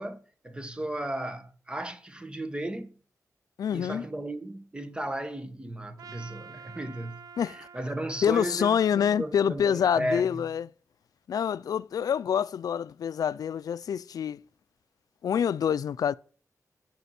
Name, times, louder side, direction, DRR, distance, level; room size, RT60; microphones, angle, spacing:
voice 1, 0.0-2.9 3.7-10.4, right 1 dB, 15° right, 1.1 m, -35 dB
voice 2, 3.6-4.0 7.4-7.6 8.2-10.7 11.3-14.4 15.2-16.1, left 8 dB, 90° left, 0.4 m, -26 dB
Trumpet, 6.0-10.3, right 6 dB, 80° right, 0.6 m, -50 dB
8.3 x 6.0 x 5.8 m
wide cardioid pair, 110°, 6 cm